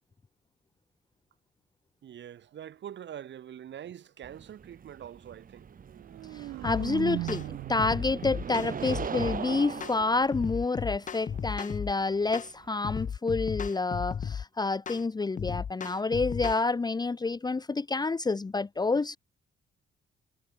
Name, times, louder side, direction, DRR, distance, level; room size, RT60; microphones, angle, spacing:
voice 1, 2.0-5.7, right 10 dB, 65° right, 6.6 m, -44 dB
sound 1, 4.2-13.1, right 7 dB, 45° right, 2.4 m, -40 dB
sound 2, 5.9-9.9, right 17 dB, 90° right, 0.8 m, -39 dB
voice 2, 6.3-19.2, left 3 dB, 20° left, 0.8 m, -29 dB
sound 3, 6.6-6.9 7.3-7.5 7.8-9.4 9.8-10.0 10.3-11.9 12.3-12.5 12.8-14.4 14.9-15.0 15.4-16.6, left 7 dB, 40° left, 0.9 m, -35 dB
cardioid pair, 90°, 20 cm